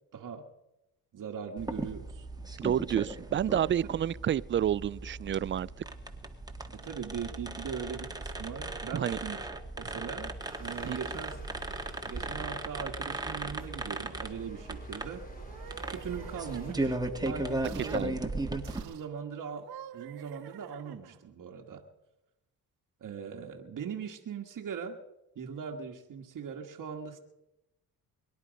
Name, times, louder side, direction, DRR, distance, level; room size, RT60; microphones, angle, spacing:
voice 1, 0.1-0.5 1.1-2.3 6.7-9.5 9.8-11.4 12.0-15.3 15.9-18.2 18.8-21.8 23.0-25.0 25.3-27.2, right 7 dB, 55° right, 1.7 m, -40 dB
sound 1, 1.6-18.8, right 2 dB, 10° right, 1.7 m, -37 dB
voice 2, 2.6-5.7 8.9-9.2 10.8-11.0 17.9-18.1, right 10 dB, 30° right, 0.4 m, -29 dB
sound 2, 10.4-16.7, equal, 20° left, 3.4 m, -51 dB
sound 3, 15.3-17.0 17.6-18.1 18.6-19.1 19.5-21.3, right 11 dB, 75° right, 1.2 m, -49 dB
22.5 x 10.5 x 5.2 m
cardioid pair, 80°, 38 cm